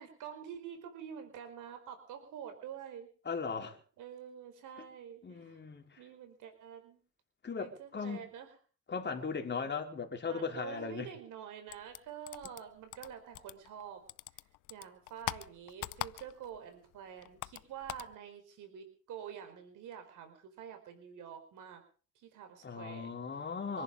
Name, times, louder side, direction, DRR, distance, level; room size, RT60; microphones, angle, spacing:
voice 1, 0.0-3.1 4.0-5.6 6.0-7.0 7.6-8.5 10.3-14.0 14.7-21.8 22.1-23.1 23.7-23.8, right 8 dB, 85° right, 4.8 m, -47 dB
voice 2, 3.3-3.8 5.2-6.0 7.4-8.3 8.9-11.1 22.6-23.8, left 5 dB, 35° left, 3.6 m, -38 dB
mouse clicking, 11.7-13.8 14.1-16.6 16.9-18.1, left 16 dB, 85° left, 0.7 m, -42 dB
25.5 x 11.0 x 5.3 m
cardioid pair, 90°, 30 cm